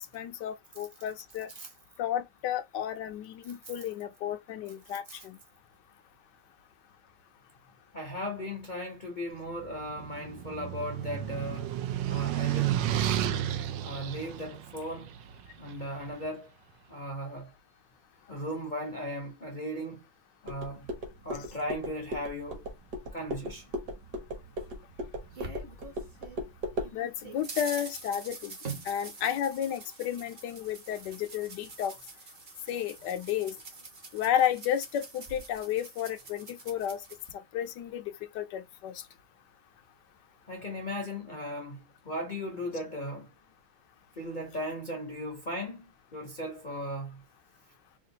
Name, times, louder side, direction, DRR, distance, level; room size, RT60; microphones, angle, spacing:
voice 1, 0.1-1.5 2.0-5.4 26.9-28.5 28.8-31.9 32.7-33.5 34.1-37.0 37.3-39.0, left 10 dB, 70° left, 1.1 m, -32 dB
voice 2, 7.9-11.7 12.1-12.8 13.8-15.1 15.6-16.5 16.9-17.5 18.3-20.0 20.4-20.9 21.2-22.6 23.1-23.7 40.5-43.3 44.2-47.2, equal, 40° left, 0.7 m, -37 dB
sound 1, 9.6-15.9, right 11 dB, 70° right, 1.2 m, -32 dB
sound 2, 20.5-26.9, equal, 55° right, 1.7 m, -38 dB
sound 3, 24.6-26.4 26.8-37.3, right 4 dB, 40° right, 0.9 m, -45 dB
4.9 x 2.5 x 2.8 m
omnidirectional pair, 2.2 m